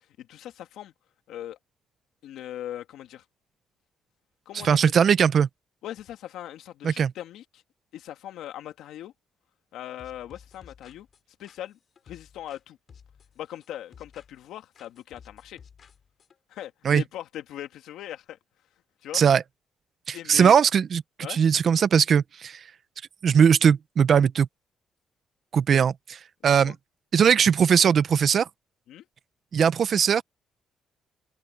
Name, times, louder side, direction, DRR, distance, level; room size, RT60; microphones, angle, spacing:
voice 1, 0.2-0.9 1.3-1.6 2.2-3.2 4.5-4.8 5.8-7.6 7.9-9.1 9.7-11.1 11.4-11.8 12.1-12.8 13.4-15.6 16.5-18.4 19.0-19.2 20.1-20.6 21.2-21.4 26.5-26.7 28.9-29.1, left 12 dB, 85° left, 2.4 m, -39 dB
voice 2, 4.5-5.5 6.8-7.1 16.8-17.0 19.1-19.4 20.1-21.0 21.3-22.6 23.2-24.5 25.5-26.7 27.1-28.5 29.5-30.2, right 7 dB, 55° right, 0.8 m, -20 dB
sound 1, 10.0-12.6 12.9-14.5 14.7-16.4, left 7 dB, 50° left, 5.3 m, -53 dB
open air
cardioid pair, 90°, 0 cm